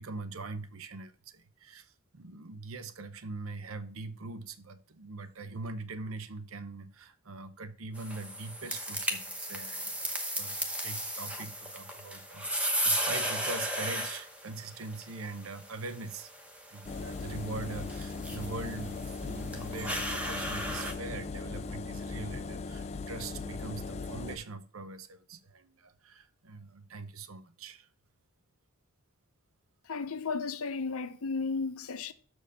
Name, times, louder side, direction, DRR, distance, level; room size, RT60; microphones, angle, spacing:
voice 1, 0.0-16.3 16.7-27.9, right 3 dB, 70° right, 0.7 m, -42 dB
sound 1, 8.0-20.9, equal, 5° right, 0.9 m, -36 dB
Engine, 16.9-24.4, left 3 dB, 30° left, 0.3 m, -38 dB
voice 2, 29.9-32.1, left 4 dB, 75° left, 0.7 m, -34 dB
6.8 x 4.5 x 6.1 m
head